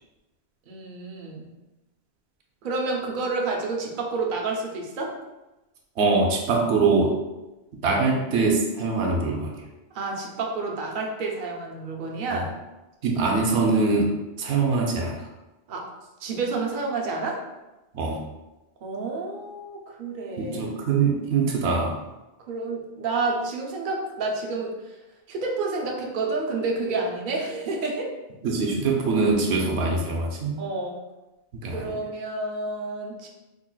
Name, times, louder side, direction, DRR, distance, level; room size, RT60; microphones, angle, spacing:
voice 1, 0.7-1.5 2.6-5.1 9.9-12.5 15.7-15.8 16.2-17.4 18.8-20.6 22.5-25.0 25.3-28.1 30.6-31.0 31.7-33.3, right 3 dB, 55° right, 0 dB, 0.7 m, -29 dB
voice 2, 6.0-7.2 7.8-9.5 12.3-12.4 13.0-15.3 17.9-18.2 20.4-22.0 28.4-30.5 31.6-31.9, right 4 dB, 90° right, 0 dB, 0.9 m, -23 dB
3.9 x 2.8 x 2.2 m, 1.0 s
omnidirectional pair, 1.1 m